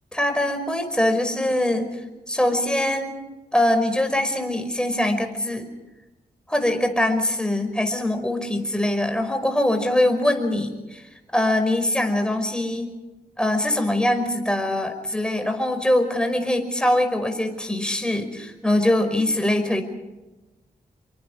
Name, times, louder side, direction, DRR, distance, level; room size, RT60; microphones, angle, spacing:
voice 1, 0.1-1.9 2.3-3.1 3.5-5.7 6.5-11.0 11.3-13.0 13.4-19.8, left 1 dB, 5° left, 5 dB, 5.4 m, -23 dB
28.0 x 24.0 x 4.8 m, 1.1 s
cardioid pair, 75°, 16 cm